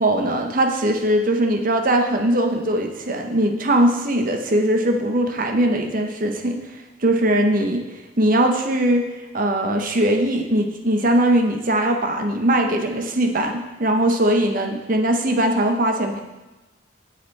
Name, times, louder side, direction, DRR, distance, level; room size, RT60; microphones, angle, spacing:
voice 1, 0.0-6.6 7.0-7.8 8.2-9.0 9.3-16.2, right 1 dB, 45° right, 3 dB, 0.8 m, -20 dB
7.7 x 6.8 x 4.1 m, 1.1 s
head